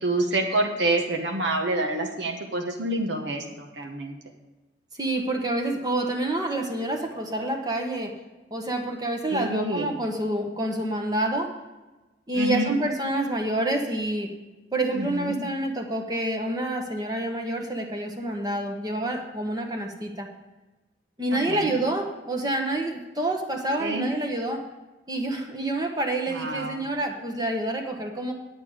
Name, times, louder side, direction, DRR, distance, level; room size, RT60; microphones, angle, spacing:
voice 1, 0.0-4.2 9.3-10.0 12.3-12.8 14.9-15.4 21.3-21.8 23.8-24.1 26.3-26.8, right 2 dB, 70° right, 2 dB, 1.1 m, -27 dB
voice 2, 4.9-8.1 8.5-11.5 12.3-14.3 14.7-20.3 21.2-24.6 25.1-28.3, right 1 dB, 20° right, 2 dB, 1.0 m, -28 dB
9.4 x 9.1 x 4.9 m, 1.1 s
head